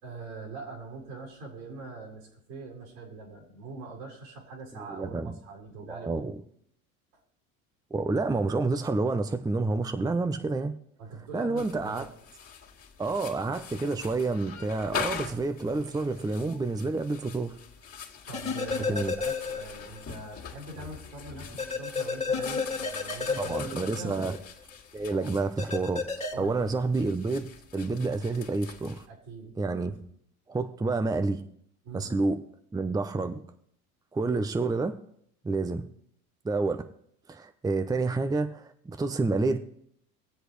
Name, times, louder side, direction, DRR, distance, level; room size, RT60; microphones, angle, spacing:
voice 1, 0.0-6.2 11.0-12.1 18.3-24.2 26.3-26.8 29.1-29.6 29.9-30.0 31.8-32.1, right 3 dB, 75° right, -1 dB, 4.5 m, -42 dB
voice 2, 4.9-5.3 5.9-6.4 7.9-10.8 11.3-12.1 13.0-17.6 18.9-19.1 23.4-24.4 24.9-26.0 26.4-29.1 29.6-29.9 30.5-31.4 31.9-32.4 32.7-33.4 34.1-35.0 35.4-35.8 36.4-36.9 37.3-39.6, right 3 dB, 10° right, 9 dB, 0.7 m, -29 dB
sound 1, 11.6-29.0, left 6 dB, 35° left, 2.3 m, -43 dB
sound 2, 18.3-20.0 20.3-20.4 21.6-24.4 25.6-26.3, left 4 dB, 15° left, 2.2 m, -31 dB
24.0 x 8.0 x 3.2 m, 0.69 s
hypercardioid pair, 80°, 42 cm